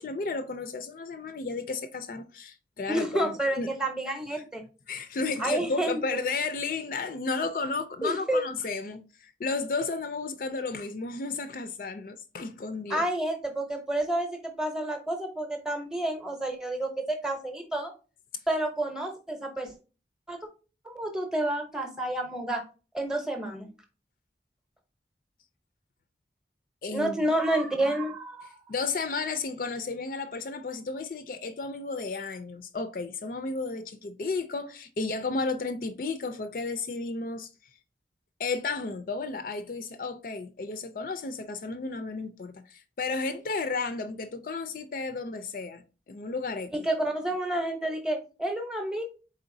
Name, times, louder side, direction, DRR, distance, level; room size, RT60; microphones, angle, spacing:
voice 1, 0.0-3.7 4.9-13.1 26.8-27.1 28.7-37.5 38.4-46.7, left 3 dB, 50° left, 0.4 m, -33 dB
voice 2, 2.9-4.6 5.4-6.0 8.0-8.4 12.9-17.9 18.5-19.7 20.3-20.4 20.8-22.6 22.9-23.7 26.9-28.6 46.7-49.1, right 1 dB, 5° right, 0.7 m, -29 dB
4.1 x 3.9 x 2.6 m
head